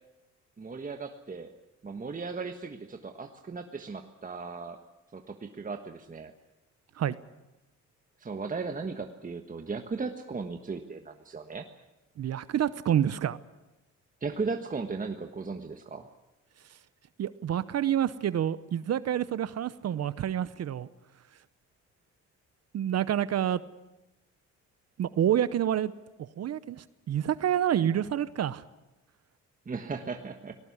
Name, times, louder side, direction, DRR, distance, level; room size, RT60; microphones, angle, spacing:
voice 1, 0.6-1.5 1.8-4.8 5.1-6.3 8.2-11.6 14.2-16.1 29.6-30.5, right 4 dB, 25° right, 5 dB, 1.4 m, -36 dB
voice 2, 12.2-13.4 16.7-16.8 17.2-20.9 22.7-23.6 25.0-25.9 26.2-28.6, right 10 dB, 55° right, 16 dB, 0.9 m, -28 dB
19.5 x 17.5 x 9.8 m, 1.0 s
cardioid pair, 90°, 30 cm